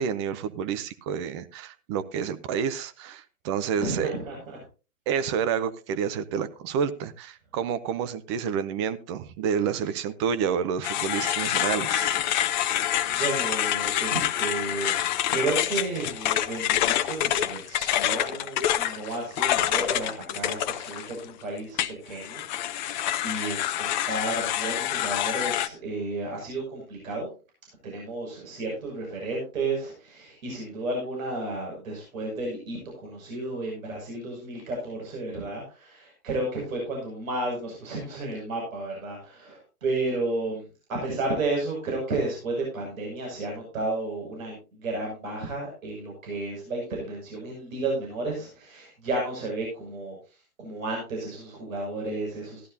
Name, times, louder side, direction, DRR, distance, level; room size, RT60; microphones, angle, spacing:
voice 1, 0.0-4.1 5.1-12.2, right 7 dB, 20° right, 11 dB, 0.6 m, -29 dB
voice 2, 3.8-4.6 12.9-14.9 15.3-21.8 22.1-27.3 27.8-40.6 40.9-52.7, right 2 dB, 60° right, -1 dB, 6.5 m, -32 dB
sound 1, 10.8-21.3 21.8-25.7, left 12 dB, 30° left, 0.7 m, -27 dB
16.0 x 12.0 x 2.7 m, 0.33 s
hypercardioid pair, 130°, 45 cm